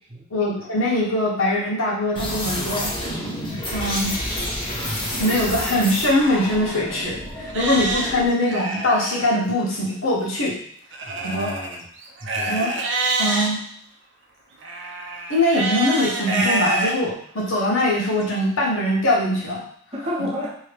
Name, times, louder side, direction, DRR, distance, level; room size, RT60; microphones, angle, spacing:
voice 1, 0.3-2.9 3.7-4.2 5.1-10.6 11.2-11.5 12.5-12.8 13.2-13.6 15.3-19.6, left 1 dB, 80° left, -4 dB, 1.0 m, -22 dB
sound 1, 2.2-8.3, left 1 dB, 25° left, 0.8 m, -29 dB
Livestock farm animals working animals, 6.3-6.4 7.0-7.1 7.5-9.2 10.9-13.5 14.6-16.9 17.5-17.6 18.2-18.3, right 2 dB, 60° right, 0.5 m, -26 dB
voice 2, 11.0-11.9 12.2-12.6 19.9-20.6, left 1 dB, 30° right, -5 dB, 0.7 m, -31 dB
2.7 x 2.7 x 3.3 m, 0.65 s
head